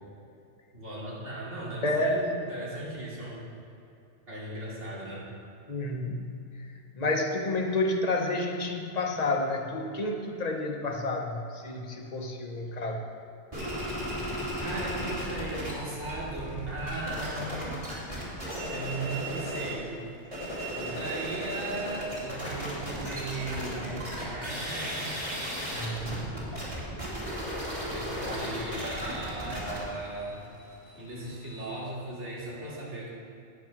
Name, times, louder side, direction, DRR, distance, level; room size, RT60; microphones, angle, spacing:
voice 1, 0.7-3.4 4.3-5.3 12.8-12.9 14.6-17.8 18.6-19.9 20.4-25.1 27.9-30.4 30.9-33.1, right 2 dB, 90° right, -6 dB, 3.1 m, -37 dB
voice 2, 1.8-2.2 5.7-6.3 6.9-13.0 25.7-26.4 28.2-28.4, left 2 dB, 40° left, 2 dB, 1.1 m, -30 dB
sound 1, 13.5-15.7 16.0-19.8 20.2-31.7, equal, 30° right, 2.9 m, -35 dB
9.6 x 8.8 x 5.9 m, 2.7 s
omnidirectional pair, 1.2 m